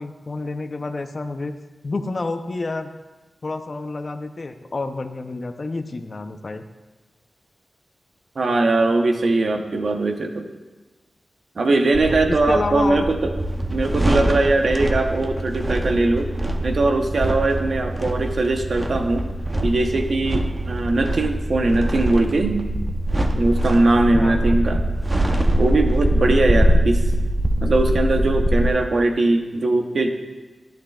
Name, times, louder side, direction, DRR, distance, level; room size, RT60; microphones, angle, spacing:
voice 1, 0.0-1.6 1.8-2.9 3.4-6.6 12.0-13.1 24.1-24.6, left 3 dB, 50° left, 8 dB, 0.6 m, -29 dB
voice 2, 8.4-10.5 11.6-13.3 13.7-16.3 16.6-19.3 19.6-22.6 23.3-24.8 25.6-27.1 27.6-30.1, right 2 dB, 65° right, 5 dB, 0.8 m, -20 dB
sound 1, 11.9-28.7, right 1 dB, 25° right, 0.7 m, -23 dB
11.5 x 9.8 x 2.3 m, 1.2 s
cardioid pair, 60°, 0 cm